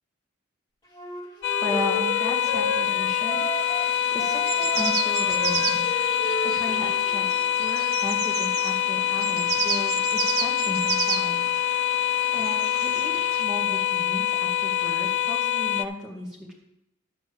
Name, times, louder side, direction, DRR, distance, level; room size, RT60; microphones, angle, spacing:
Wind instrument woodwind instrument, 0.9-3.9 4.2-7.5, left 2 dB, 20° left, 2.1 m, -33 dB
sound 1, 1.4-15.8, left 11 dB, 55° left, 0.3 m, -25 dB
voice 1, 1.6-5.9 6.3-7.3 7.6-16.5, left 1 dB, 5° right, -3 dB, 2.1 m, -36 dB
sound 2, 3.4-13.4, right 8 dB, 75° right, 0.7 m, -33 dB
10.5 x 4.1 x 7.8 m, 0.85 s
head